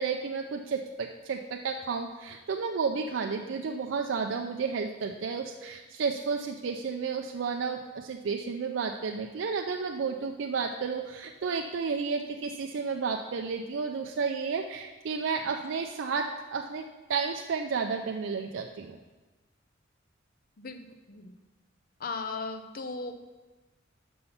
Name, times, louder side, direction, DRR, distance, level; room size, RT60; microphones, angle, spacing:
voice 1, 0.0-19.0, right 5 dB, 65° right, 3 dB, 0.4 m, -32 dB
voice 2, 20.6-21.3 22.0-23.1, left 4 dB, 45° left, 7 dB, 0.5 m, -37 dB
5.5 x 5.4 x 5.6 m, 1.2 s
head